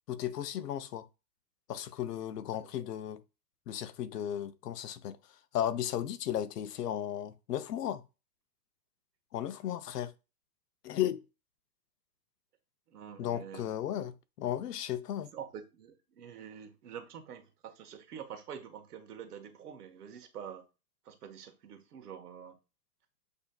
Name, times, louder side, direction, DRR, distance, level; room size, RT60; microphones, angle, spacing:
voice 1, 0.1-1.0 1.7-3.2 3.7-5.2 5.5-8.0 9.3-10.1 10.8-11.2 13.2-15.3, left 11 dB, 80° left, 0.8 m, -35 dB
voice 2, 12.9-13.7 15.3-20.7 21.0-22.6, right 8 dB, 75° right, 1.3 m, -46 dB
8.1 x 2.8 x 2.2 m
hypercardioid pair, 165°, 47 cm